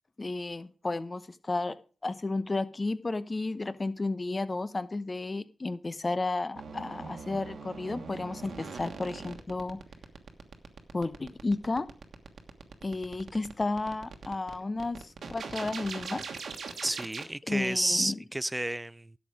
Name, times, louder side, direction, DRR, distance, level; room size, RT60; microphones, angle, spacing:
voice 1, 0.2-1.8 2.0-9.8 10.9-11.9 12.8-16.2 17.5-18.2, left 3 dB, 40° left, 0.9 m, -32 dB
sound 1, 6.5-17.2, right 5 dB, 75° right, 1.3 m, -41 dB
voice 2, 16.8-19.1, right 1 dB, 15° right, 0.4 m, -31 dB
11.5 x 7.3 x 4.9 m
supercardioid pair, 40°, 0 cm